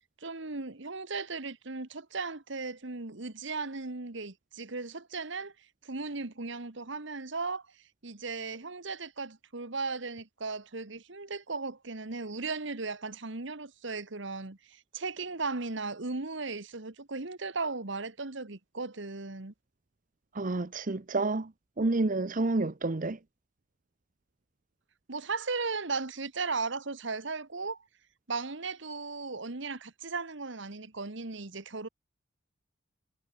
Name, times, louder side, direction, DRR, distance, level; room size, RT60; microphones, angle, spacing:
voice 1, 0.2-5.5 5.8-7.6 8.0-19.5 25.1-27.8 28.3-31.9, right 3 dB, 60° right, 1.5 m, -36 dB
voice 2, 20.3-21.5 21.8-23.2, right 2 dB, 40° right, 0.8 m, -29 dB
head